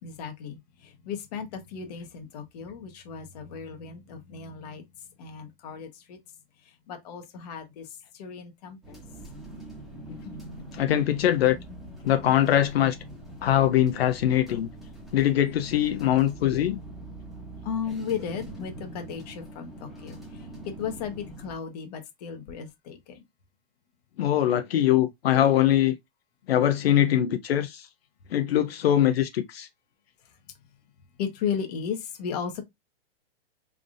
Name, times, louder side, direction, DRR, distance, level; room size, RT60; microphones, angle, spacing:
voice 1, 0.0-4.8 5.2-6.2 6.9-7.9 8.1-9.0 10.2-10.4 17.6-23.2 31.2-32.6, left 7 dB, 45° left, 1.1 m, -35 dB
sound 1, 8.8-21.5, right 1 dB, ahead, 1.0 m, -43 dB
voice 2, 10.7-11.6 12.0-13.0 13.4-14.7 15.1-16.8 24.2-26.0 26.5-27.9 28.3-29.7, left 11 dB, 80° left, 0.7 m, -22 dB
3.8 x 3.6 x 2.5 m
hypercardioid pair, 160°, 30 cm